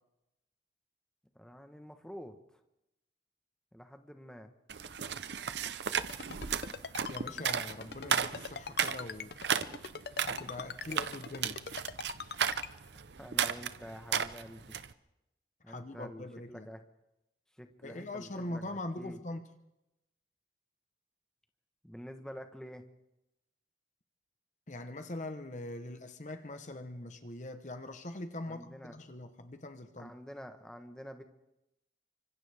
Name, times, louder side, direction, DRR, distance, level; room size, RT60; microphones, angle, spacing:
voice 1, 1.3-2.6 3.7-4.5 13.2-14.8 15.6-16.8 17.5-19.2 21.8-22.8 28.5-29.0 30.0-31.2, equal, 5° left, 1.2 m, -48 dB
sound 1, 4.7-14.9, right 7 dB, 80° right, 0.8 m, -35 dB
Ringtone, 5.9-12.7, left 5 dB, 65° left, 0.6 m, -41 dB
voice 2, 7.0-9.4 10.3-11.7 15.7-16.7 17.8-19.5 24.7-30.1, left 1 dB, 45° left, 1.0 m, -42 dB
30.0 x 25.5 x 3.5 m
head